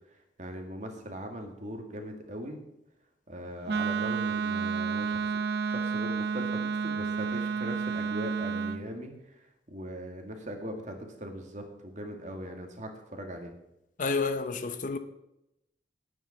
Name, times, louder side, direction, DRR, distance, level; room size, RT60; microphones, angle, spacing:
voice 1, 0.4-2.6 3.3-5.3 5.7-9.1 9.7-13.5, equal, 40° right, 2.1 m, -40 dB
Wind instrument woodwind instrument, 3.7-8.8, right 5 dB, 60° right, 0.7 m, -30 dB
voice 2, 14.0-15.0, left 4 dB, 45° left, 0.8 m, -30 dB
10.5 x 9.3 x 5.9 m
head